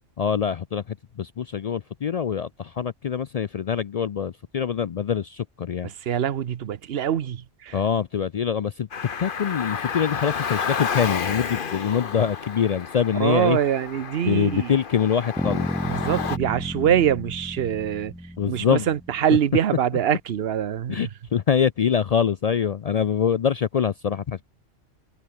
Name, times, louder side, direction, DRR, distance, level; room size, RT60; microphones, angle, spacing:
voice 1, 0.2-5.9 7.7-8.9 9.2-13.6 14.2-15.7 18.4-18.9 20.9-24.4, left 7 dB, 75° left, 0.3 m, -24 dB
voice 2, 5.8-7.8 13.2-14.7 15.8-18.1 18.5-21.1, right 9 dB, 60° right, 1.0 m, -24 dB
Car, 8.9-16.4, left 6 dB, 45° left, 1.2 m, -31 dB
sound 1, 15.4-19.3, equal, ahead, 2.0 m, -32 dB
omnidirectional pair, 1.2 m